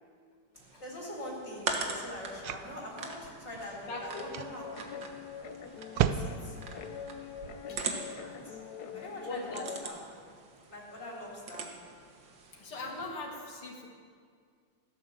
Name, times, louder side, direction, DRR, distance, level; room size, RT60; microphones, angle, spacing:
sound 1, 0.6-13.1, right 4 dB, 65° right, 2.1 m, -43 dB
voice 1, 0.8-5.2 5.9-6.7 7.7-10.1 10.7-12.0, left 1 dB, 30° left, -4 dB, 4.1 m, -44 dB
sound 2, 2.2-7.9, right 10 dB, 85° right, 1.5 m, -37 dB
voice 2, 3.9-4.3 7.7-7.8 9.2-9.7 12.5-13.9, left 2 dB, 80° left, 0 dB, 3.0 m, -40 dB
Guitar, 4.4-9.8, left 7 dB, 60° left, 1.1 m, -44 dB
15.5 x 12.0 x 7.3 m, 2.1 s
omnidirectional pair, 2.4 m